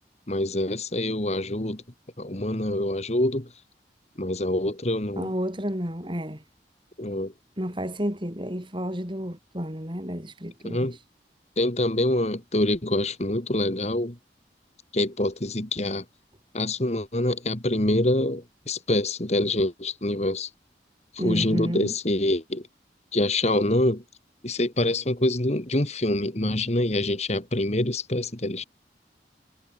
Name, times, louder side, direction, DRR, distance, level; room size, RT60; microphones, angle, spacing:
voice 1, 0.3-1.8 2.2-3.5 4.2-5.3 7.0-7.3 10.6-11.0 11.6-14.2 14.9-16.0 16.5-20.5 21.1-22.6 23.1-24.0 24.4-28.6, left 1 dB, 40° left, 2.0 m, -25 dB
voice 2, 5.2-6.4 7.6-11.0 21.2-21.9, equal, 30° right, 7.0 m, -31 dB
head